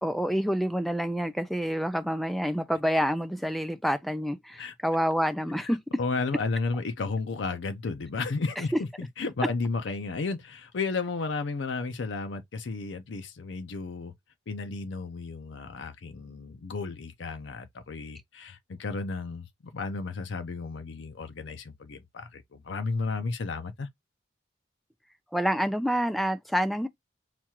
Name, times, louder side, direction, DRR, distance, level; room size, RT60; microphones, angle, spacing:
voice 1, 0.0-5.8 25.3-26.9, equal, ahead, 0.3 m, -27 dB
voice 2, 6.0-14.1 14.5-23.9, left 4 dB, 80° left, 0.5 m, -33 dB
5.8 x 2.4 x 2.9 m
head